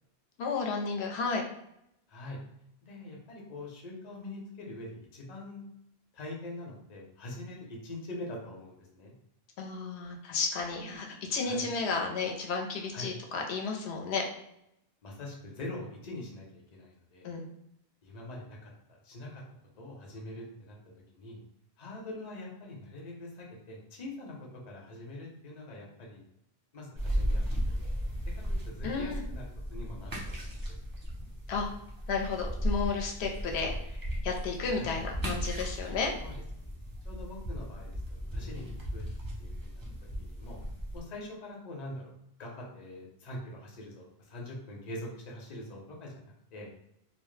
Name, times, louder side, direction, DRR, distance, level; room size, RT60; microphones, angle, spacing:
voice 1, 0.4-1.4 9.6-14.2 17.2-17.5 28.8-29.2 31.5-31.7 32.1-33.7 34.2-36.1, left 4 dB, 85° left, 1 dB, 0.8 m, -32 dB
voice 2, 2.8-5.6 6.1-9.1 11.4-11.7 12.9-13.1 15.0-17.3 18.0-18.7 19.0-19.4 19.8-20.8 21.1-21.4 21.8-24.4 24.6-26.2 26.7-27.8 28.2-28.3 28.7-29.4 29.7-30.6 34.7-35.0 36.2-36.3 36.6-36.7 37.0-38.0 38.3-39.0 39.4-39.8 40.2-40.6 40.9-42.1 42.4-46.1 46.5-46.7, left 1 dB, 45° left, -2 dB, 0.7 m, -43 dB
sound 1, 27.0-41.0, equal, 30° right, 0.4 m, -36 dB
2.1 x 2.0 x 3.1 m, 0.79 s
omnidirectional pair, 1.1 m